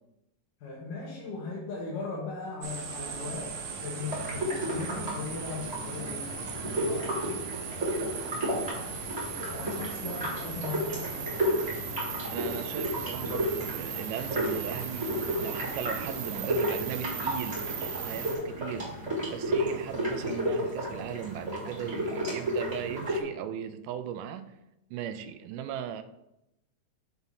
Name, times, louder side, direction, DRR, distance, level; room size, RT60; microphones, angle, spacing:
voice 1, 0.6-7.4 8.0-8.7 9.5-11.4, left 4 dB, 85° left, -5 dB, 3.0 m, -39 dB
sound 1, 2.6-18.4, right 6 dB, 75° right, 2.2 m, -38 dB
sound 2, 4.1-23.2, equal, 10° right, 2.7 m, -33 dB
voice 2, 12.3-15.1 15.4-17.7 18.0-18.9 19.3-24.5 24.9-26.0, right 9 dB, 90° right, 10 dB, 2.2 m, -37 dB
7.9 x 7.0 x 2.7 m, 0.89 s
omnidirectional pair, 3.6 m